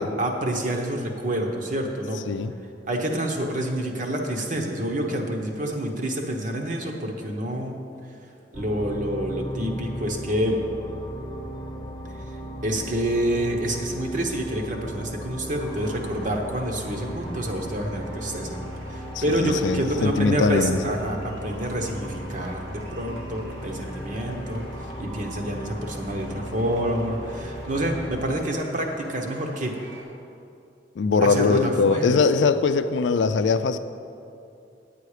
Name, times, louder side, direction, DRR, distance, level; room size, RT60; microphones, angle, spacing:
voice 1, 0.0-2.2 2.9-7.8 8.5-10.6 12.6-18.6 18.9-24.7 25.0-29.7 31.2-32.2, right 1 dB, 45° right, 2 dB, 1.0 m, -27 dB
sound 1, 8.5-28.1, equal, 25° left, 1.0 m, -36 dB
sound 2, 15.2-30.0, equal, 90° right, 2.0 m, -46 dB
voice 2, 19.2-20.8 31.0-33.8, left 4 dB, 85° left, 11 dB, 0.4 m, -22 dB
9.3 x 8.6 x 4.9 m, 2.6 s
head